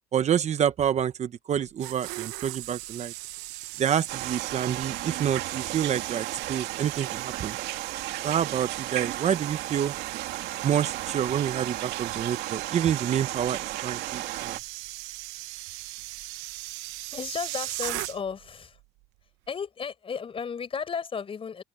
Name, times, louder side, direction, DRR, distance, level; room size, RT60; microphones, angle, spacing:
voice 1, 0.1-3.1 3.8-7.6 8.2-9.9 10.6-11.8 12.2-14.6, right 9 dB, 40° right, 1.0 m, -27 dB
sound 1, 1.5-18.5 18.8-19.0, right 20 dB, 85° right, 1.0 m, -39 dB
sound 2, 4.1-14.6, right 15 dB, 70° right, 2.3 m, -34 dB
voice 2, 17.1-18.8 19.5-21.6, left 6 dB, 30° left, 5.0 m, -34 dB
open air
cardioid pair, 110°, 17 cm